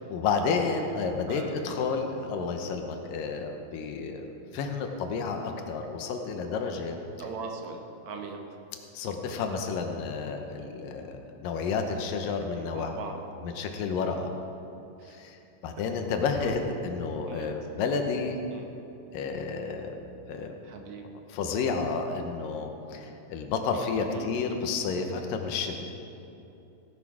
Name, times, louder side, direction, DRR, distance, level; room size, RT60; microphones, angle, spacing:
voice 1, 0.1-4.3 4.5-7.0 8.9-13.0 13.4-14.3 15.2-15.4 15.6-18.4 19.1-19.9 20.3-20.5 21.3-25.9, left 5 dB, 80° left, 4 dB, 2.6 m, -31 dB
voice 2, 7.2-8.4 12.5-13.2 15.0-15.2 16.4-16.5 17.2-17.5 18.5-18.7 20.6-21.0 22.9-23.0 24.0-24.3, right 5 dB, 65° right, 3 dB, 2.1 m, -40 dB
16.5 x 11.0 x 4.8 m, 2.8 s
omnidirectional pair, 4.0 m